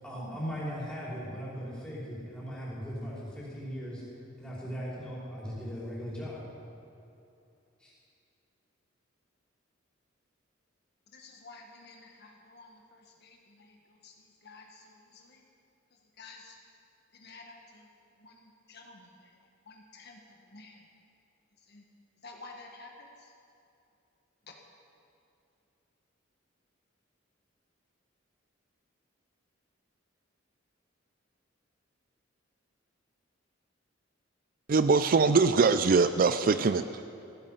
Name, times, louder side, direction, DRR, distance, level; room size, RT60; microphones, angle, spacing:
voice 1, 0.0-4.0 4.4-6.4 7.8-7.9, equal, 5° left, -8 dB, 4.9 m, -38 dB
voice 2, 11.1-15.4 16.2-16.6 17.1-17.9 18.2-20.8 21.7-21.8 22.2-23.3 24.5-24.6, left 3 dB, 55° left, 1 dB, 1.5 m, -52 dB
voice 3, 34.7-37.0, right 4 dB, 45° right, 11 dB, 0.4 m, -23 dB
15.5 x 15.5 x 5.6 m, 2.7 s
head